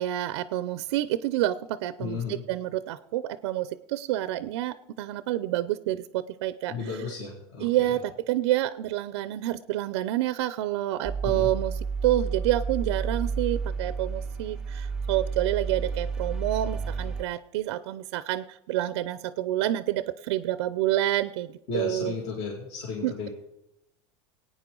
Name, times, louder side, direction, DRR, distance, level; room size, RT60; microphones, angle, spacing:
voice 1, 0.0-7.0 7.6-22.1 23.0-23.3, right 14 dB, 85° right, 15 dB, 0.5 m, -28 dB
voice 2, 2.0-2.4 6.7-7.7 11.2-11.5 21.7-23.3, left 4 dB, 50° left, -2 dB, 2.5 m, -33 dB
sound 1, 11.0-17.2, right 5 dB, 5° right, 0.5 m, -31 dB
21.0 x 9.1 x 3.8 m, 0.86 s
supercardioid pair, 150°, 14 cm